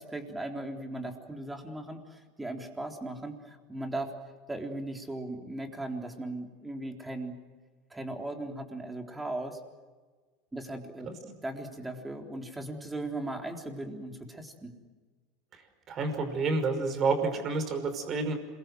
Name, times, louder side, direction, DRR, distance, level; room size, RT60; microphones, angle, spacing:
voice 1, 0.0-4.1 4.5-7.3 7.9-9.6 10.5-14.7, right 2 dB, 10° right, 3 dB, 3.8 m, -38 dB
voice 2, 15.9-18.4, right 3 dB, 35° right, 8 dB, 5.5 m, -29 dB
27.5 x 23.0 x 7.8 m, 1.4 s
supercardioid pair, 125°, 0 cm